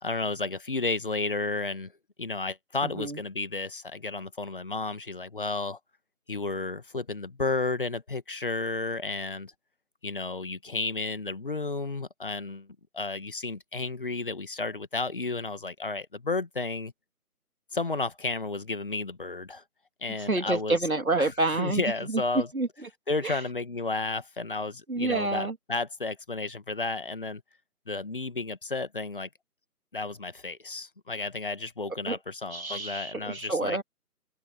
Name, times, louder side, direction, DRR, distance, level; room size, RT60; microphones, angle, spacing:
voice 1, 0.0-1.9 2.2-5.8 6.3-9.5 10.0-12.7 12.9-16.9 17.7-19.6 20.0-20.8 21.2-21.3 21.6-22.5 23.1-27.4 27.9-29.3 29.9-33.8, left 3 dB, 35° left, 1.5 m, -32 dB
voice 2, 2.8-3.2 20.2-22.9 23.2-23.4 24.9-25.6 32.1-32.2 32.5-33.8, right 2 dB, 65° right, 3.0 m, -28 dB
open air
figure-of-eight pair, 160°, 46 cm